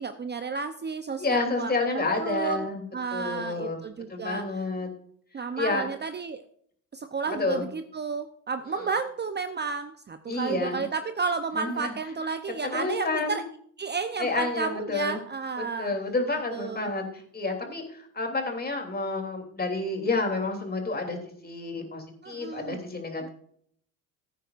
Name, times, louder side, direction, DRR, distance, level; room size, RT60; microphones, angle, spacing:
voice 1, 0.0-2.7 2.9-4.4 5.3-6.4 6.9-13.4 13.8-15.9 16.5-16.9 22.2-22.8 23.2-23.3, right 5 dB, 25° right, 10 dB, 0.7 m, -32 dB
voice 2, 1.2-2.8 3.1-3.8 4.1-4.9 5.6-5.8 7.2-7.7 8.8-8.9 10.3-10.9 11.5-11.9 12.6-13.4 14.2-15.2 15.6-23.3, left 3 dB, 25° left, 3 dB, 3.1 m, -30 dB
15.5 x 9.2 x 2.5 m, 0.63 s
supercardioid pair, 85°, 38 cm